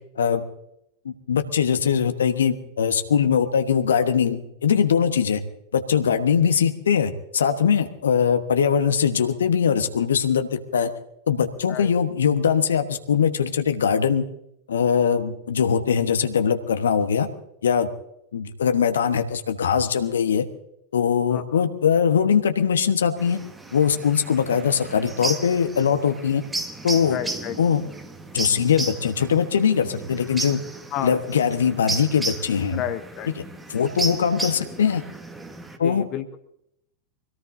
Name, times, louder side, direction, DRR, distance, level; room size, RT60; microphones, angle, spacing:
voice 1, 1.0-5.4 5.7-10.9 11.3-14.2 14.7-17.3 17.6-17.9 18.3-20.4 20.9-23.4 23.7-26.4 26.8-27.2 27.6-27.8 28.3-30.6 31.0-32.8 33.7-35.0 35.8-36.1, left 7 dB, 65° left, 8 dB, 1.3 m, -21 dB
voice 2, 21.3-21.6 27.1-27.6 30.9-31.1 32.7-33.3 35.8-36.4, left 10 dB, 35° left, 9 dB, 1.0 m, -31 dB
sound 1, 23.2-35.8, right 2 dB, 10° right, 1.5 m, -34 dB
24.5 x 17.5 x 2.8 m, 0.79 s
figure-of-eight pair, 90°, 0 cm